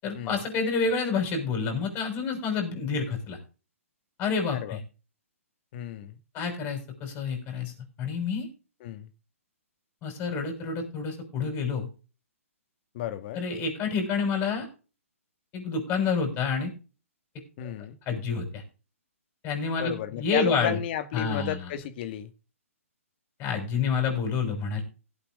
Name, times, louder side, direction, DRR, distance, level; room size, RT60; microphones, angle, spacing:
voice 1, 0.0-3.4 4.2-4.8 6.3-8.5 10.0-11.9 13.3-14.7 15.5-16.7 17.6-17.7 18.1-18.6 19.4-20.8 21.1-21.6 23.4-24.8, left 5 dB, 25° left, 6.2 m, -28 dB
voice 2, 5.7-6.2 8.8-9.1 12.9-13.4 17.6-18.0 19.8-22.3, left 11 dB, 45° left, 1.8 m, -33 dB
17.5 x 8.5 x 3.8 m
hypercardioid pair, 140°, 8 cm